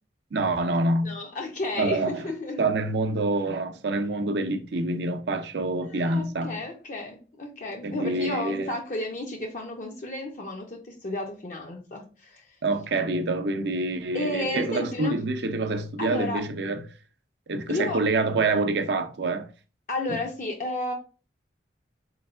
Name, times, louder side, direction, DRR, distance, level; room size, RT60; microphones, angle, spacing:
voice 1, 0.3-1.2 1.8-2.2 2.6-6.6 7.8-8.7 12.6-16.8 17.5-19.5, right 2 dB, 70° right, 0.5 m, -26 dB
voice 2, 1.0-2.6 5.9-12.6 14.1-15.2 16.0-16.4 17.7-18.0 19.9-20.9, left 2 dB, 45° left, 0.5 m, -32 dB
4.2 x 3.1 x 2.4 m
head